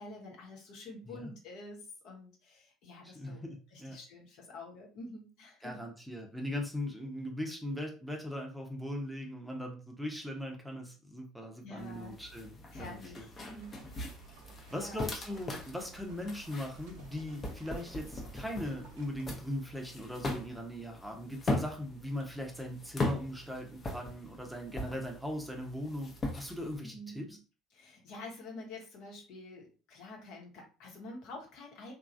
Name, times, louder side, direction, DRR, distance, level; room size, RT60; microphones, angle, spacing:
voice 1, 0.0-3.4 3.7-5.8 11.6-12.1 12.7-13.8 14.7-15.0 26.8-27.3 27.7-31.9, left 2 dB, 60° left, -1 dB, 1.0 m, -48 dB
voice 2, 3.0-4.0 5.6-13.3 14.7-27.3, left 1 dB, ahead, 1 dB, 0.7 m, -39 dB
sound 1, 11.8-26.8, left 1 dB, 35° left, 0.7 m, -40 dB
sound 2, 13.6-19.3, right 3 dB, 70° right, 0.8 m, -56 dB
3.0 x 2.3 x 2.5 m, 0.35 s
hypercardioid pair, 60°, 0 cm